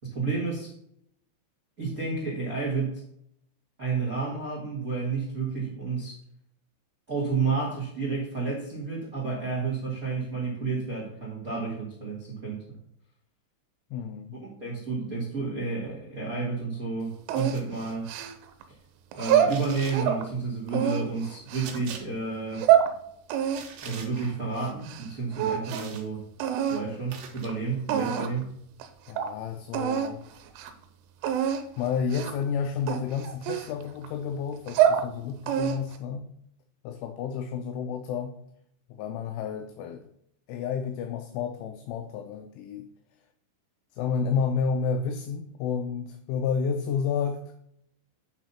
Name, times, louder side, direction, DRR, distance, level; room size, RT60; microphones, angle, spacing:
voice 1, 0.1-0.7 1.8-3.0 3.8-6.2 7.1-12.6 14.4-18.1 19.1-22.6 23.8-26.2 26.7-28.5, right 4 dB, 50° right, -3 dB, 1.0 m, -31 dB
voice 2, 13.9-14.4 29.1-30.2 31.8-36.2 36.8-38.4 38.9-40.0 40.5-42.9 43.9-47.4, left 6 dB, 85° left, 5 dB, 3.1 m, -30 dB
sound 1, 17.3-18.6 19.1-20.2 20.7-21.8 22.4-22.9 23.3-25.1 25.3-26.0 26.4-26.8 27.5-27.6 27.9-28.4 28.8-28.9 29.2-29.3 29.7-30.1 30.5-30.7 31.2-31.6 32.1-32.4 32.9-34.1 34.5-35.1 35.5-36.0, right 9 dB, 90° right, 3.3 m, -26 dB
sound 2, 17.4-17.6 19.5-20.0 21.6-22.0 23.5-24.1 25.7-26.1 27.1-27.5, right 6 dB, 65° right, 3.0 m, -42 dB
9.1 x 4.1 x 5.5 m, 0.71 s
omnidirectional pair, 5.6 m